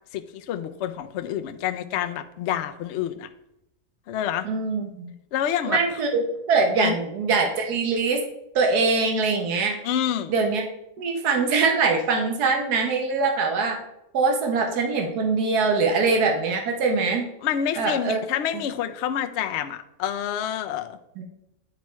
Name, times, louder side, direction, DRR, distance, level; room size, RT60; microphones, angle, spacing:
voice 1, 0.1-3.3 4.1-4.5 5.3-5.8 6.8-6.9 9.8-10.3 17.4-21.0, left 10 dB, 70° left, 7 dB, 0.6 m, -28 dB
voice 2, 4.4-5.1 5.7-8.2 8.5-9.8 10.3-10.6 11.0-13.8 14.1-17.3 17.8-18.2 21.2-21.3, right 4 dB, 80° right, 2 dB, 1.5 m, -23 dB
9.4 x 4.5 x 3.1 m, 0.82 s
omnidirectional pair, 1.7 m